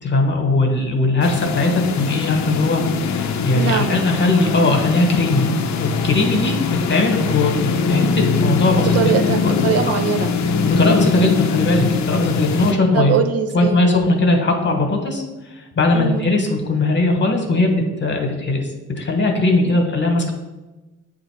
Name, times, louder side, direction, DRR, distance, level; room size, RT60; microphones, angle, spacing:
voice 1, 0.0-5.5 5.8-9.1 9.4-9.6 9.9-10.0 10.6-13.2 13.5-17.7 18.0-18.7 19.0-20.3, left 2 dB, 35° left, 3 dB, 1.2 m, -19 dB
sound 1, 1.2-12.7, left 5 dB, 65° left, 0.6 m, -22 dB
voice 2, 3.6-4.0 8.8-10.3 12.9-13.8 15.9-16.2 19.6-19.8, right 7 dB, 55° right, 7 dB, 0.5 m, -21 dB
7.8 x 2.6 x 4.6 m, 1.1 s
cardioid pair, 90°, 30 cm